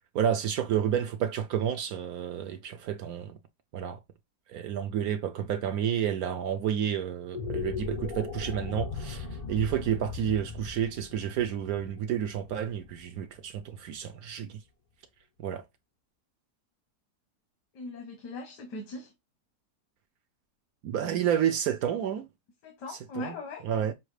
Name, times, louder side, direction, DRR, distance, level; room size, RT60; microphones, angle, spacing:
voice 1, 0.1-3.4 3.7-4.0 4.5-14.6 15.4-15.6 20.8-22.3 22.9-23.4 23.6-23.9, right 9 dB, 70° right, 1.0 m, -30 dB
sound 1, 7.2-13.6, left 5 dB, 70° left, 0.3 m, -38 dB
voice 2, 17.7-19.1 22.6-23.6, left 2 dB, 90° left, 1.7 m, -39 dB
6.1 x 2.4 x 3.2 m
omnidirectional pair, 1.7 m